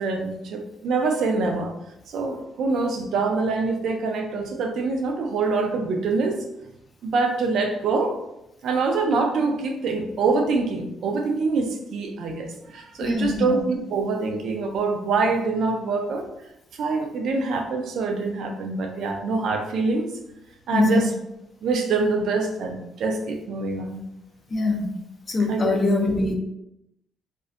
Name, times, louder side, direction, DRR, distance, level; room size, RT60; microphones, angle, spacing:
voice 1, 0.0-1.7 2.1-6.4 7.0-8.2 8.6-16.2 16.7-20.1 20.7-21.1 21.6-24.0 25.5-25.8, right 3 dB, 70° right, 4 dB, 0.4 m, -25 dB
voice 2, 13.0-13.6 20.7-21.1 24.5-24.9 25.3-26.3, left 2 dB, 40° left, 2 dB, 0.5 m, -23 dB
2.5 x 2.0 x 2.5 m, 0.84 s
cardioid pair, 90°, 0 cm